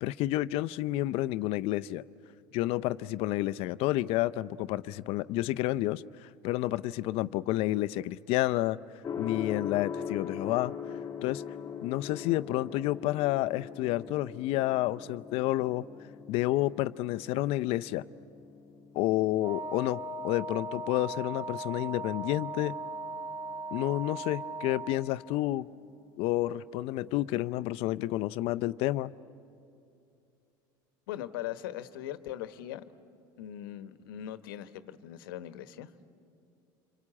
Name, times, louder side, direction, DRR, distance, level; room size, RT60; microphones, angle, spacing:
voice 1, 0.0-2.0 2.5-8.8 9.2-10.7 11.2-11.4 11.8-15.8 16.3-18.0 18.9-22.7 23.7-25.7 26.2-29.1, left 16 dB, 60° left, 15 dB, 0.6 m, -30 dB
Gong, 9.0-26.9, left 7 dB, 25° left, 1.3 m, -43 dB
Wind instrument woodwind instrument, 19.4-25.1, right 2 dB, 45° right, 5.3 m, -38 dB
voice 2, 31.1-32.8 33.4-36.1, left 12 dB, 85° left, 11 dB, 1.1 m, -40 dB
26.5 x 25.5 x 8.6 m, 2.7 s
supercardioid pair, 105°, 11 cm